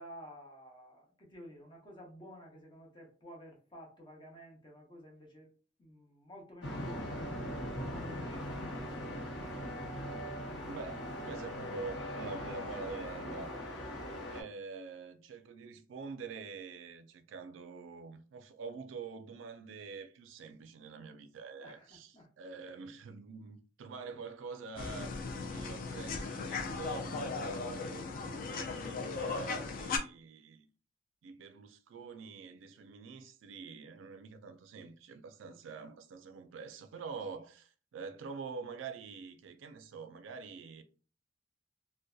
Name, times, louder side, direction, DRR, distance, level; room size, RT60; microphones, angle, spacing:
voice 1, 0.0-5.5 5.8-7.3 8.0-9.6 21.6-22.3, equal, 25° left, 0.7 m, -52 dB
sound 1, 6.6-14.4, equal, 65° left, 0.8 m, -40 dB
voice 2, 10.7-13.9 14.3-25.1 25.5-30.7 31.2-40.8, right 5 dB, 80° right, 0.3 m, -46 dB
sound 2, 24.8-30.0, left 4 dB, 50° left, 0.3 m, -37 dB
2.6 x 2.1 x 2.3 m
head